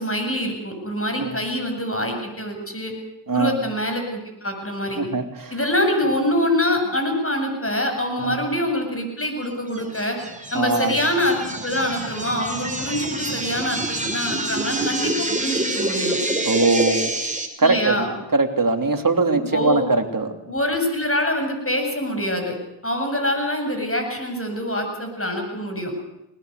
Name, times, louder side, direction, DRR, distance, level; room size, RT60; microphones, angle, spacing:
voice 1, 0.0-2.9 3.3-5.0 5.5-10.2 10.5-16.2 17.6-18.1 19.3-19.8 20.5-22.5 22.8-25.9, left 1 dB, 25° left, 4 dB, 7.9 m, -25 dB
voice 2, 5.0-5.5 8.2-8.4 10.5-10.9 16.5-17.1 17.6-20.3, right 3 dB, 40° right, 5 dB, 3.1 m, -21 dB
sound 1, 9.7-17.5, right 1 dB, 15° right, 4.5 m, -27 dB
20.0 x 20.0 x 8.2 m, 0.89 s
cardioid pair, 40°, 50 cm